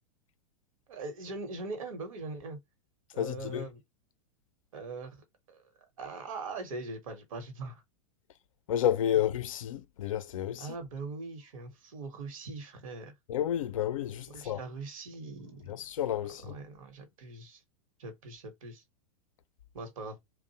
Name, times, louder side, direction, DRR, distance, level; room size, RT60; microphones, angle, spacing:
voice 1, 0.9-2.6 3.1-3.8 4.7-5.2 5.5-5.6 6.0-7.8 10.6-13.1 14.3-15.7 16.4-17.6 18.0-18.8 19.7-20.2, right 3 dB, 70° right, 0.9 m, -41 dB
voice 2, 3.2-3.7 8.7-10.7 13.3-14.6 15.7-16.5, left 10 dB, 65° left, 0.4 m, -31 dB
2.5 x 2.0 x 2.7 m
figure-of-eight pair, 95°, 18 cm